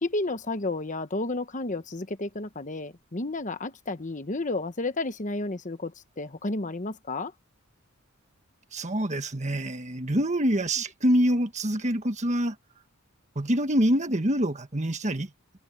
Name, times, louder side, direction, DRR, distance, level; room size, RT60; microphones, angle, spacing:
voice 1, 0.0-7.3, left 2 dB, 35° left, 1.1 m, -31 dB
voice 2, 8.7-12.5 13.3-15.6, equal, 35° right, 1.6 m, -26 dB
head